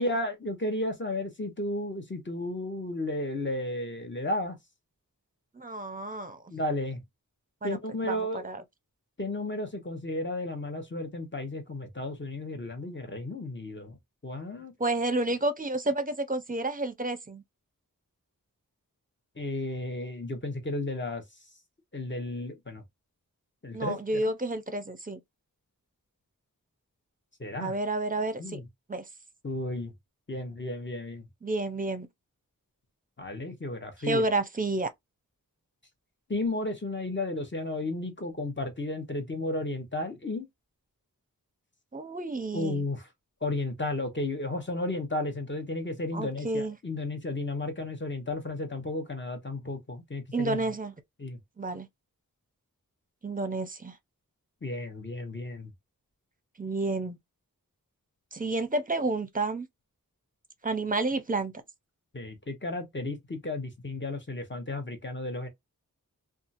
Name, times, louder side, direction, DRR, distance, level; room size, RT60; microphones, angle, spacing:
voice 1, 0.0-4.6 6.5-7.0 7.6-8.5 9.2-14.0 14.2-14.7 19.4-21.2 21.9-22.8 23.6-24.2 27.4-27.7 28.4-28.6 29.4-29.9 30.3-31.3 33.2-34.2 36.3-40.5 42.5-43.1 43.4-50.6 51.2-51.4 54.6-55.7 62.1-65.5, left 2 dB, 35° left, 1.0 m, -33 dB
voice 2, 5.6-6.4 7.6-7.8 8.0-8.6 14.8-17.4 23.7-25.2 27.6-28.6 28.9-29.0 31.4-32.1 34.0-34.9 41.9-42.8 46.1-46.8 50.3-50.9 51.6-51.9 53.2-53.9 56.6-57.2 58.3-59.7 60.6-61.5, right 2 dB, 25° right, 0.7 m, -30 dB
2.7 x 2.4 x 2.6 m
wide cardioid pair, 45°, 34 cm